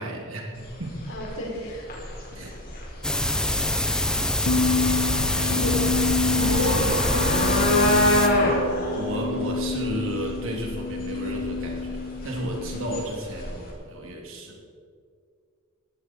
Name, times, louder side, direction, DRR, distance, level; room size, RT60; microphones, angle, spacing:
voice 1, 0.0-1.0 2.3-2.6 4.0-4.3 5.4-5.8 6.4-6.9 8.9-14.6, right 1 dB, 65° right, 0 dB, 3.5 m, -33 dB
sound 1, 0.5-13.7, left 1 dB, 45° left, 5.4 m, -28 dB
voice 2, 1.1-1.8 5.5-5.7 6.3-7.0 7.3-7.7, equal, 70° left, -1 dB, 5.0 m, -31 dB
sound 2, 3.0-8.3, left 1 dB, 5° left, 1.2 m, -24 dB
sound 3, 4.5-13.0, left 4 dB, 85° left, 1.7 m, -29 dB
18.0 x 16.0 x 4.8 m, 2.2 s
head